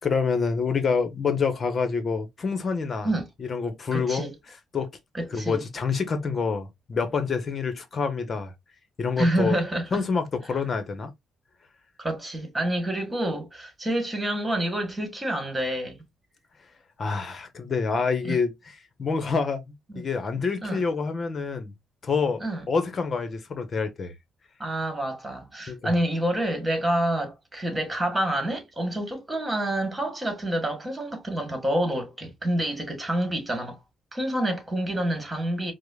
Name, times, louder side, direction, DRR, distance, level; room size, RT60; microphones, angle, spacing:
voice 1, 0.0-3.1 3.4-4.2 4.7-4.9 5.3-8.5 9.0-9.6 9.9-11.1 17.0-18.5 19.0-21.7 22.0-24.1 25.7-25.9, left 5 dB, 45° left, 0.9 m, -27 dB
voice 2, 3.9-4.3 5.1-5.7 9.2-10.0 12.0-16.1 18.2-18.4 19.9-20.0 20.6-20.8 22.4-22.6 24.6-33.8 34.1-35.7, right 1 dB, 15° right, 1.7 m, -28 dB
4.8 x 2.1 x 2.2 m
cardioid pair, 90°, 0 cm